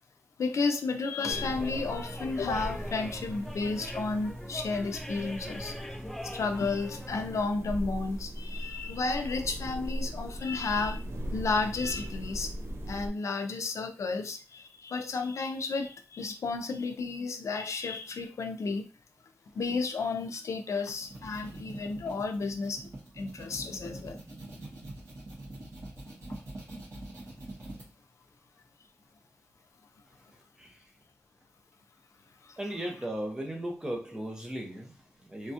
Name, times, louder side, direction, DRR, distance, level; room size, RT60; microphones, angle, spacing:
voice 1, 0.4-5.9 6.2-11.0 11.3-12.5 12.9-18.8 19.5-22.9 23.2-24.2 32.4-32.6, left 4 dB, 85° left, 0.4 m, -32 dB
sound 1, 1.2-7.5, equal, 5° left, 0.3 m, -41 dB
sound 2, 1.3-13.1, equal, 55° right, 0.6 m, -40 dB
sound 3, 20.9-27.9, right 2 dB, 75° right, 1.6 m, -44 dB
voice 2, 32.6-35.5, right 1 dB, 15° right, 0.7 m, -36 dB
3.4 x 2.2 x 2.7 m
wide cardioid pair, 130°, 5 cm